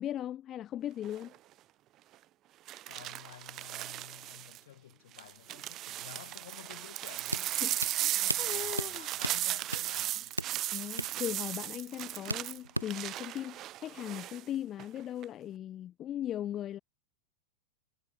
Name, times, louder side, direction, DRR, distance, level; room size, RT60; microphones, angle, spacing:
voice 1, 0.0-1.3 7.6-9.1 10.7-16.8, left 11 dB, 30° left, 0.5 m, -38 dB
sound 1, 1.0-1.4 2.7-4.6 5.1-14.4 14.8-15.2, right 14 dB, 35° right, 0.9 m, -36 dB
voice 2, 2.9-7.7 8.1-10.3, left 12 dB, 60° left, 3.3 m, -52 dB
sound 2, 7.3-13.1, right 1 dB, 85° right, 0.7 m, -39 dB
figure-of-eight pair, 90°, 0 cm